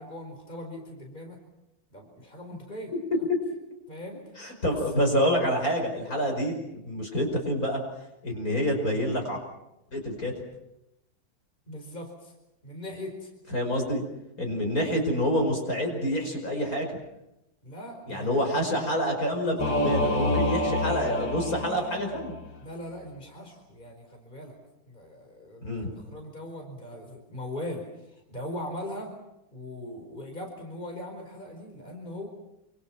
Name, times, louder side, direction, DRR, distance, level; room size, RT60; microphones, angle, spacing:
voice 1, 0.0-1.4 1.9-2.9 3.9-4.2 4.6-4.8 6.2-6.4 11.7-12.3 12.6-13.3 17.6-18.9 22.6-24.6 24.9-29.1 29.5-32.3, left 1 dB, 25° left, 2 dB, 4.9 m, -40 dB
voice 2, 4.4-7.8 8.2-9.4 9.9-10.3 13.5-14.0 14.4-16.9 18.1-22.3 25.6-25.9, equal, 45° left, 3 dB, 5.9 m, -27 dB
Singing / Musical instrument, 19.6-22.5, left 2 dB, 65° left, 3.1 m, -27 dB
28.0 x 26.5 x 6.1 m, 0.89 s
omnidirectional pair, 2.1 m